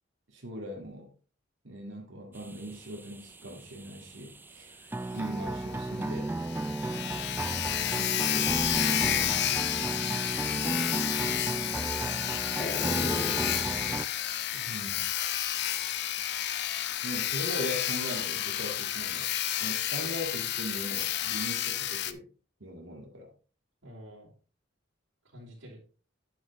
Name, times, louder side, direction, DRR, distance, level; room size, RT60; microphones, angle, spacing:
voice 1, 0.3-1.1 1.6-4.8 5.1-6.3 8.0-9.3 10.5-11.0 14.7-15.0 17.0-19.3 19.6-22.3 22.6-23.3, equal, 70° right, 1.9 m, -40 dB
sound 1, 2.4-14.1, right 2 dB, 10° right, 0.3 m, -34 dB
Sawing, 5.2-5.3 5.6-5.7 6.1-6.2 6.4-22.1, left 12 dB, 60° left, 0.7 m, -31 dB
sound 2, 11.6-16.6 16.9-20.4 20.7-21.9, left 2 dB, 30° left, 1.5 m, -41 dB
voice 2, 12.8-13.5 14.5-14.7 23.8-24.3 25.3-25.8, equal, 90° right, 3.7 m, -48 dB
9.5 x 7.7 x 3.1 m
head